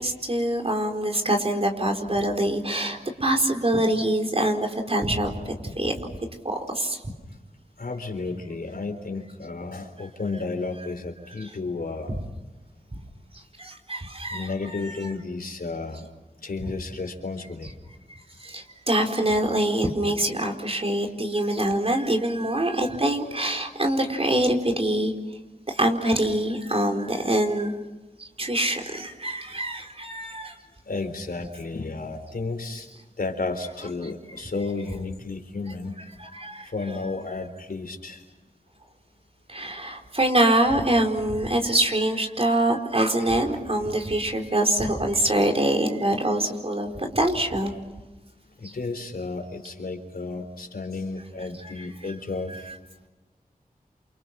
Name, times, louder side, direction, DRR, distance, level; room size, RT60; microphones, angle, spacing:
voice 1, 0.0-6.0 6.4-7.0 12.1-12.2 13.6-15.0 18.4-25.1 25.7-27.7 28.2-30.6 36.2-36.7 39.5-47.7 51.6-51.9 52.5-52.6, right 1 dB, 40° right, 2 dB, 4.5 m, -25 dB
voice 2, 7.8-12.2 14.3-16.1 16.4-17.7 30.9-32.9 33.2-36.0 36.6-38.3 43.5-43.6 44.1-44.6 48.6-52.7, left 3 dB, 80° left, 5 dB, 3.9 m, -32 dB
29.5 x 28.0 x 6.0 m, 1.1 s
wide cardioid pair, 60°, 15 cm